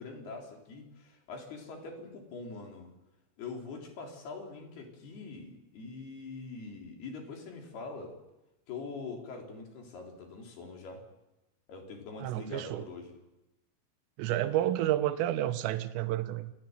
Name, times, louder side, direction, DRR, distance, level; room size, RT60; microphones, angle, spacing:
voice 1, 0.0-2.9 3.4-8.2 8.7-11.0 11.7-13.2, left 4 dB, 55° left, 2 dB, 5.5 m, -43 dB
voice 2, 12.2-12.9 14.2-16.5, right 13 dB, 85° right, 9 dB, 3.7 m, -30 dB
28.5 x 16.0 x 9.1 m, 0.95 s
omnidirectional pair, 5.7 m